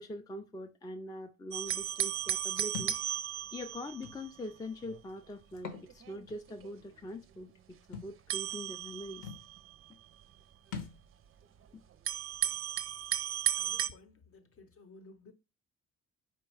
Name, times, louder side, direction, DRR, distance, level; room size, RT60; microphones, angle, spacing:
voice 1, 0.0-3.2 3.5-7.5 7.9-9.3, left 1 dB, 15° left, 0.4 m, -43 dB
sound 1, 1.5-4.4 4.8-5.0 5.7-6.7 8.3-10.2 10.9-11.0 12.0-13.9, right 11 dB, 45° right, 0.4 m, -35 dB
Thump thud, 2.7-3.0 4.0-4.2 5.5-5.9 6.3-6.4 7.9-8.1 8.9-9.0 9.2-9.5 10.7-11.0, left 7 dB, 75° left, 1.1 m, -41 dB
voice 2, 13.5-15.3, left 3 dB, 45° left, 0.8 m, -55 dB
4.3 x 2.2 x 4.6 m
cardioid pair, 90°, 30 cm